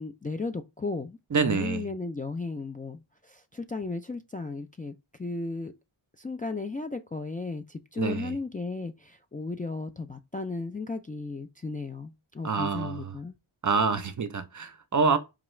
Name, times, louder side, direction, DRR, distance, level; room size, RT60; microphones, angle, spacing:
voice 1, 0.0-4.9 5.2-5.7 6.2-13.4, left 3 dB, 20° left, 0.3 m, -35 dB
voice 2, 1.3-1.9 8.0-8.3 12.4-13.1 13.6-15.2, right 5 dB, 40° right, 0.5 m, -26 dB
4.9 x 2.3 x 3.0 m
cardioid pair, 50°, 49 cm